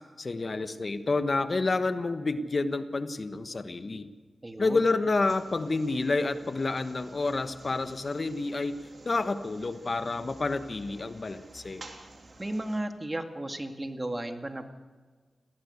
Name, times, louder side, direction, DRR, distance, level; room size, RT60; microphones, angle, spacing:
voice 1, 0.2-4.1 4.6-8.8 9.0-11.8, left 3 dB, 50° left, 10 dB, 1.2 m, -29 dB
voice 2, 4.4-4.8 12.4-14.7, right 1 dB, 25° right, 6 dB, 2.1 m, -34 dB
sound 1, 5.1-12.8, right 2 dB, 50° right, 3.1 m, -51 dB
19.0 x 17.5 x 8.2 m, 1.4 s
cardioid pair, 45°, 0 cm